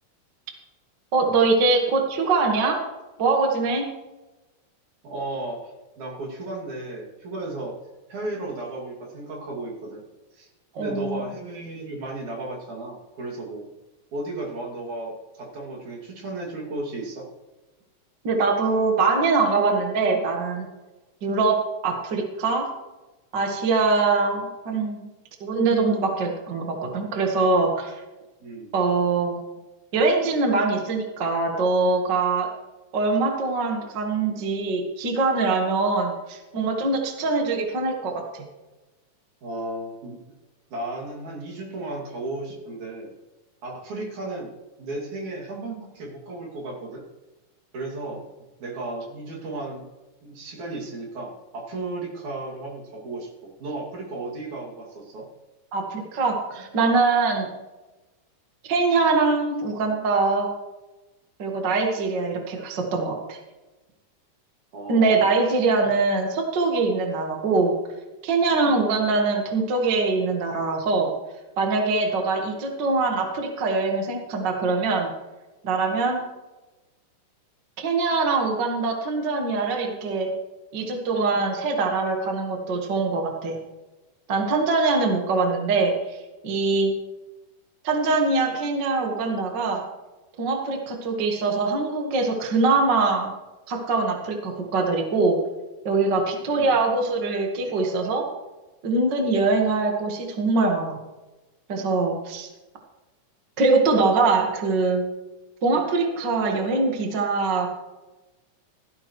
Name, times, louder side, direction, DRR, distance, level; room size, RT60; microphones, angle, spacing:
voice 1, 1.1-2.8 3.2-3.9 10.7-11.2 18.2-20.7 21.2-22.7 23.3-25.1 25.4-28.0 28.7-29.4 29.9-32.5 32.9-38.4 55.7-57.5 58.6-60.5 61.4-63.4 64.9-67.7 68.2-71.1 71.6-75.1 75.6-76.2 77.8-80.3 80.7-83.6 84.3-86.2 86.4-86.9 87.8-89.8 90.4-93.3 93.7-95.4 95.8-98.3 98.8-101.0 101.7-102.5 103.6-105.0 105.6-107.7, right 3 dB, 45° right, 2 dB, 1.7 m, -23 dB
voice 2, 5.0-7.8 8.1-10.0 10.3-10.5 10.8-13.7 14.1-17.3 28.4-28.7 39.4-40.2 40.7-43.1 43.6-44.5 44.8-47.0 47.7-48.3 48.6-49.9 50.2-55.3 64.7-65.2 68.6-68.9 96.6-96.8 97.6-97.7, right 2 dB, 65° right, -2 dB, 3.9 m, -34 dB
16.5 x 13.5 x 3.2 m, 1.1 s
omnidirectional pair, 3.7 m